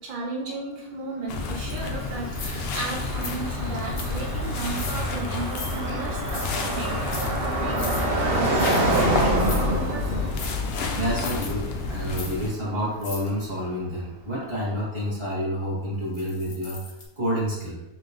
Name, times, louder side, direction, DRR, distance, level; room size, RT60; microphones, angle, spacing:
voice 1, 0.0-7.1 7.4-8.2 8.7-10.3, right 3 dB, 75° right, -2 dB, 0.4 m, -35 dB
sound 1, 1.3-12.5, left 3 dB, 85° left, 0.5 m, -30 dB
Car passing by, 1.4-13.4, right 1 dB, 50° right, 0.8 m, -28 dB
sound 2, 1.6-1.7 2.3-2.8 3.2-3.3 4.0-4.2 4.6-5.0 5.5-5.8 6.3-6.5 6.9-7.3 7.7-8.0 8.5-8.8 9.4-9.6 10.4-10.5 11.2-11.5 12.1-12.3 13.0-13.3 16.1-17.1, left 4 dB, 50° left, 0.9 m, -38 dB
voice 2, 10.9-17.8, equal, 20° right, -7 dB, 1.4 m, -29 dB
5.2 x 2.9 x 2.5 m, 0.93 s
omnidirectional pair, 1.6 m